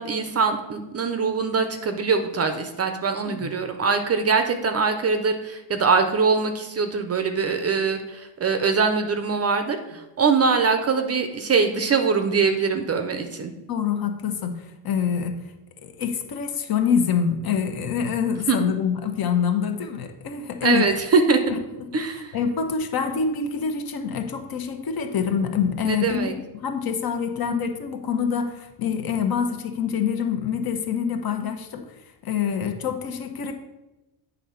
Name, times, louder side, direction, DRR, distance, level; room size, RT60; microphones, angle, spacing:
voice 1, 0.0-13.5 18.5-18.6 20.6-21.5 21.9-22.4 25.8-26.3, right 5 dB, 30° right, 7 dB, 0.6 m, -23 dB
voice 2, 13.7-15.3 15.8-20.9 21.5-21.6 22.3-31.8 32.2-33.5, left 7 dB, 45° left, 6 dB, 1.1 m, -26 dB
8.1 x 3.9 x 5.7 m, 0.99 s
cardioid pair, 125°, 49 cm